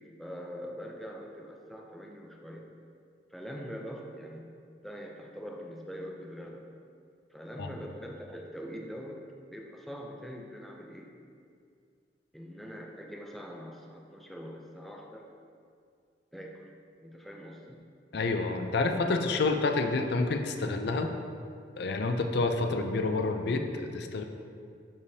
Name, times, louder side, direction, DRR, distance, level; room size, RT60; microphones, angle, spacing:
voice 1, 0.0-2.7 3.3-6.7 7.3-11.1 12.3-15.3 16.3-16.7 17.0-17.8, equal, ahead, 0 dB, 0.5 m, -43 dB
voice 2, 18.1-21.1 21.8-24.2, left 3 dB, 60° left, 5 dB, 0.5 m, -28 dB
10.5 x 4.9 x 2.8 m, 2.3 s
head